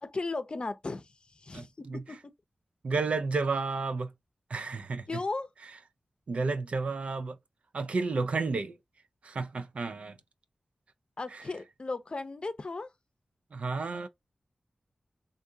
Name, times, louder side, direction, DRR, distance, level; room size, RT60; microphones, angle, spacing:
voice 1, 0.0-2.2 5.1-5.5 11.2-12.9, left 3 dB, 50° left, 0.6 m, -36 dB
voice 2, 1.5-2.0 2.8-4.1 4.5-5.0 6.3-7.4 7.7-8.8 9.2-10.2 11.3-11.4 13.5-14.1, right 4 dB, 75° right, 0.5 m, -31 dB
3.4 x 2.6 x 2.7 m
cardioid pair, 40°, 2 cm